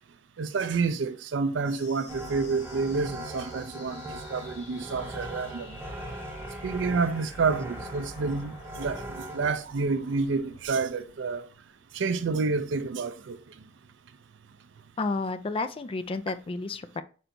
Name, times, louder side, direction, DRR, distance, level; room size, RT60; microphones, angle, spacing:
voice 1, 0.4-5.8 6.6-11.5 11.9-13.5, right 4 dB, 70° right, 0.4 m, -29 dB
sound 1, 1.6-12.7, left 3 dB, 70° left, 1.7 m, -52 dB
sound 2, 2.1-9.5, right 1 dB, 10° right, 0.8 m, -40 dB
voice 2, 15.0-17.0, left 3 dB, 30° left, 0.3 m, -31 dB
4.4 x 4.3 x 2.6 m
head